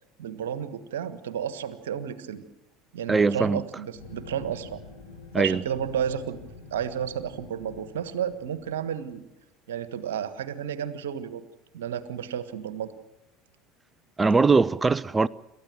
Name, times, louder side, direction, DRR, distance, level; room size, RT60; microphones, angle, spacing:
voice 1, 0.2-2.4 2.9-4.8 5.4-6.4 6.7-9.2 9.7-11.4 11.7-12.9, right 9 dB, 70° right, 1.5 m, -32 dB
voice 2, 3.1-3.6 5.3-5.6 14.2-15.3, right 4 dB, 20° right, 0.7 m, -21 dB
sound 1, 3.9-9.1, left 4 dB, 85° left, 7.3 m, -47 dB
28.5 x 13.5 x 7.7 m
figure-of-eight pair, 65°, 0 cm